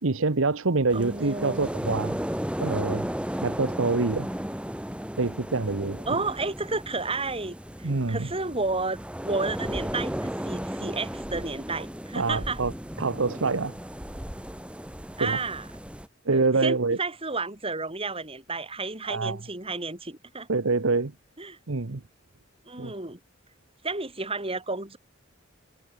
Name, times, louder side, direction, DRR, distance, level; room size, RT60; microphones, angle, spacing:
voice 1, 0.0-2.2 2.6-3.1 3.4-4.3 5.2-6.0 7.8-8.3 12.2-12.7 13.0-13.8 15.2-15.4 16.2-17.0 19.1-19.4 20.5-21.1 21.7-22.0 22.8-22.9, right 3 dB, 80° right, 1.0 m, -26 dB
sound 1, 0.9-16.1, equal, 5° right, 2.2 m, -35 dB
voice 2, 0.9-1.6 6.1-12.6 15.2-15.7 16.3-20.5 21.4-21.6 22.7-23.2 23.8-25.0, right 3 dB, 30° right, 6.9 m, -32 dB
head